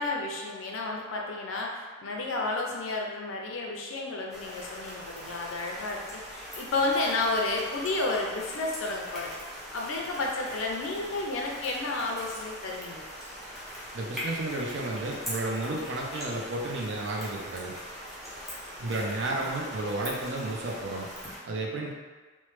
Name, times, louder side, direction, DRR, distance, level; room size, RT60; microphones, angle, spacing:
voice 1, 0.0-9.3 9.7-13.1 19.1-19.5, left 2 dB, 70° left, 0 dB, 0.5 m, -31 dB
sound 1, 4.3-21.4, equal, ahead, 0.5 m, -41 dB
voice 2, 13.9-17.7 18.8-21.1 21.4-21.9, right 2 dB, 60° right, -1 dB, 0.4 m, -32 dB
3.0 x 2.0 x 3.1 m, 1.4 s
head